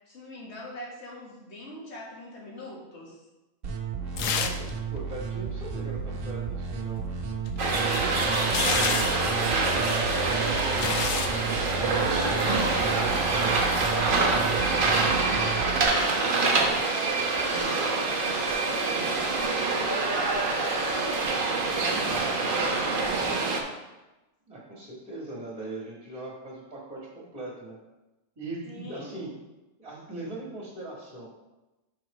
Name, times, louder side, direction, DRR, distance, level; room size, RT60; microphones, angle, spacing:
voice 1, 0.0-3.2 7.8-9.9 10.4-14.3 14.6-23.5 28.7-29.1, left 1 dB, 55° left, -3 dB, 1.8 m, -42 dB
sound 1, 3.6-15.8, right 5 dB, 75° right, 1.2 m, -33 dB
sound 2, 4.2-4.7 5.0-5.1 7.5-9.3 10.2-11.4 12.2-12.4, left 7 dB, 85° left, 1.0 m, -30 dB
voice 2, 4.2-7.0 24.5-27.8 28.4-29.3 29.8-31.3, right 2 dB, 30° right, -3 dB, 1.8 m, -40 dB
sound 3, 7.6-23.6, right 3 dB, 45° right, 1.0 m, -26 dB
6.2 x 4.5 x 4.9 m, 1.0 s
omnidirectional pair, 1.3 m